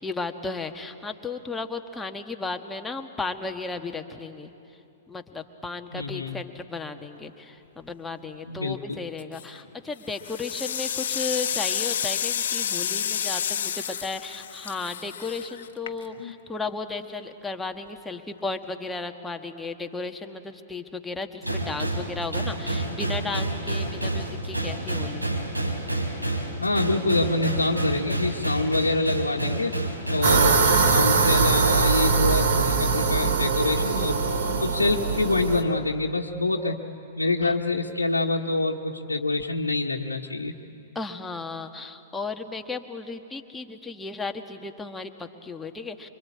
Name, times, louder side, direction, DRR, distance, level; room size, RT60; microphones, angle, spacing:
voice 1, 0.0-4.5 5.1-25.2 37.4-37.5 40.9-46.1, left 3 dB, 10° left, 5 dB, 1.5 m, -34 dB
voice 2, 5.9-6.4 8.5-9.0 26.6-29.7 30.1-34.2 34.6-36.8 37.2-40.5, left 2 dB, 80° left, -2 dB, 1.4 m, -26 dB
sound 1, 9.2-9.6 10.1-16.3, left 8 dB, 55° left, 1.3 m, -30 dB
sound 2, 21.4-30.3, right 1 dB, 85° right, 4.8 m, -29 dB
sound 3, 30.2-35.6, right 4 dB, 50° right, 2.7 m, -22 dB
26.5 x 25.0 x 8.7 m, 2.9 s
figure-of-eight pair, 105°, 0 cm